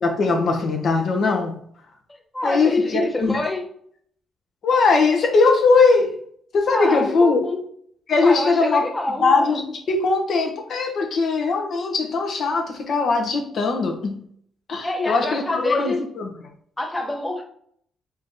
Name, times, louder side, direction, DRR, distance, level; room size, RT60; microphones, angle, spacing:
voice 1, 0.0-1.6 2.4-3.4 4.6-6.2 6.5-7.4 8.1-8.8 9.2-14.2 14.7-16.3, left 4 dB, 60° left, 2 dB, 0.9 m, -20 dB
voice 2, 2.3-3.7 6.7-7.6 8.2-9.3 14.8-16.0 16.8-17.4, left 2 dB, 15° left, 1 dB, 0.9 m, -26 dB
3.5 x 2.8 x 3.7 m, 0.62 s
cardioid pair, 90°, 0 cm